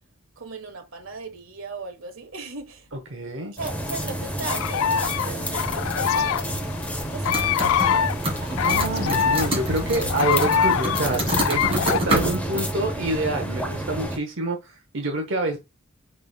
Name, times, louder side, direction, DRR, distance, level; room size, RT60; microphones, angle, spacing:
voice 1, 0.4-2.9 3.5-6.5 7.1-8.3 8.6-8.9 11.9-12.0, right 4 dB, 80° right, 1.2 m, -37 dB
voice 2, 2.9-3.5 8.6-15.6, right 2 dB, 65° right, 0.9 m, -27 dB
sound 1, 3.6-14.2, equal, 5° left, 0.8 m, -30 dB
sound 2, 4.5-12.0, left 8 dB, 85° left, 0.3 m, -24 dB
sound 3, 7.2-8.0 8.2-12.3, right 1 dB, 30° right, 2.1 m, -27 dB
5.4 x 4.0 x 2.2 m
head